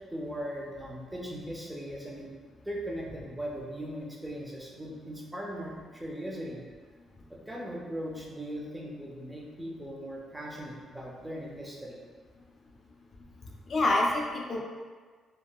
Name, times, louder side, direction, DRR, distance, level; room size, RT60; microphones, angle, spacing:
voice 1, 0.1-2.3 2.6-6.6 7.3-12.0, equal, 10° right, -2 dB, 0.6 m, -39 dB
voice 2, 13.4-14.6, left 2 dB, 45° left, -1 dB, 0.5 m, -27 dB
3.5 x 2.1 x 2.3 m, 1.5 s
cardioid pair, 90°, 0 cm